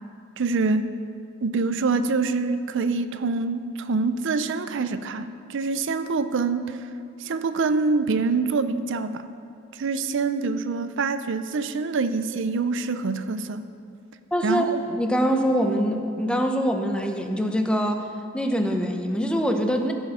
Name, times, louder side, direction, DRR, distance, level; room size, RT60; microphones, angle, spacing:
voice 1, 0.4-1.0 1.4-6.9 7.2-9.3 9.7-13.6 14.4-14.8, right 4 dB, 65° right, 11 dB, 0.5 m, -25 dB
voice 2, 14.3-14.7 14.9-18.0 18.3-19.9, equal, 5° left, 4 dB, 0.7 m, -24 dB
14.5 x 5.6 x 5.7 m, 2.4 s
head